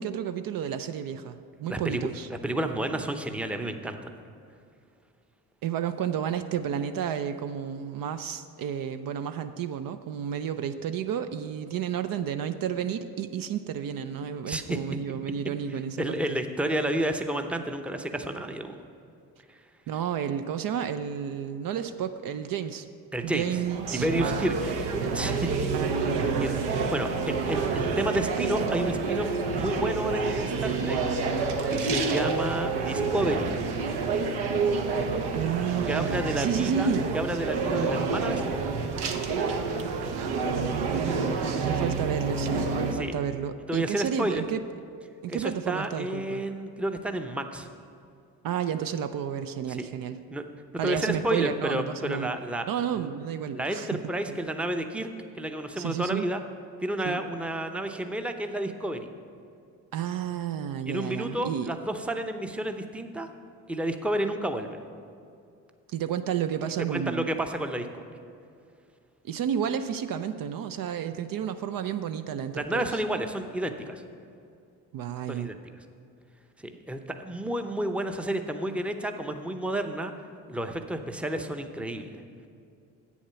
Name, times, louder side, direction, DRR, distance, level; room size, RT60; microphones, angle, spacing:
voice 1, 0.0-2.3 5.6-16.4 19.9-22.9 23.2-24.5 25.7-26.6 35.3-37.1 40.5-44.6 45.2-46.4 48.4-50.2 50.8-52.3 52.7-54.0 54.3-54.4 55.8-56.3 57.0-57.2 59.9-61.7 65.9-67.3 69.2-72.9 74.9-75.5, right 8 dB, 60° right, 9 dB, 0.5 m, -31 dB
voice 2, 1.7-4.1 14.5-14.8 16.0-18.7 19.5-19.6 23.1-23.6 23.9-25.6 26.4-31.0 31.7-33.5 35.9-36.9 37.1-38.4 43.0-43.1 43.7-44.4 45.3-47.7 49.8-49.9 50.3-50.4 50.8-52.7 53.0-53.1 53.5-55.1 55.3-56.4 56.8-59.1 60.9-63.3 63.7-64.8 66.9-68.0 72.5-74.0 75.3-75.6 76.6-80.1 80.5-82.2, right 1 dB, 5° right, 6 dB, 0.6 m, -31 dB
sound 1, 23.2-42.9, right 4 dB, 80° right, 0.9 m, -28 dB
8.2 x 7.2 x 5.7 m, 2.5 s
supercardioid pair, 65°, 39 cm